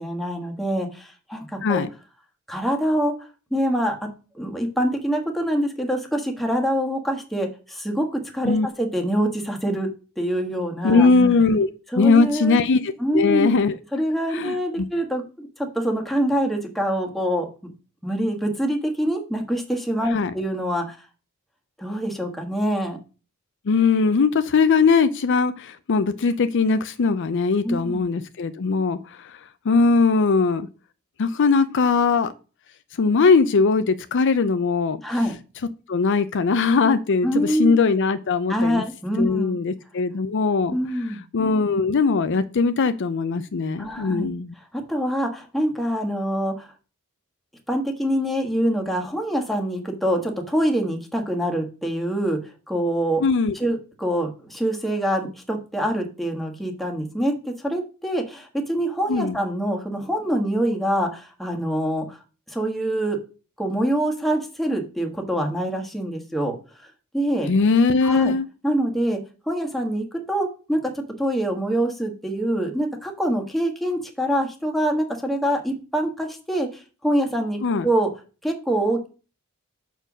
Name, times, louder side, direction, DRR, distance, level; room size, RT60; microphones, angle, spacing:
voice 1, 0.0-1.8 2.5-3.1 3.5-4.0 4.3-9.9 10.2-11.1 11.9-12.6 13.0-13.5 13.9-15.5 15.7-17.7 18.0-21.0 21.8-23.0 27.6-28.0 35.0-35.3 37.2-37.8 38.5-39.6 40.7-41.2 43.8-44.3 44.7-46.7 47.7-52.4 52.7-53.2 53.6-62.2 62.5-63.2 63.6-66.5 67.1-67.5 68.0-68.3 68.6-69.2 69.5-70.8 71.2-76.7 77.0-78.1 78.4-79.1, right 1 dB, ahead, 1 dB, 1.4 m, -25 dB
voice 2, 10.8-11.7 12.0-13.8 14.3-14.9 20.1-20.3 23.7-29.4 29.6-30.7 31.2-32.3 33.0-35.0 35.9-38.8 39.2-40.7 41.3-44.5 53.2-53.5 59.1-59.4 67.5-68.5 77.6-77.9, left 4 dB, 60° left, 12 dB, 0.5 m, -20 dB
6.8 x 4.5 x 6.0 m, 0.35 s
head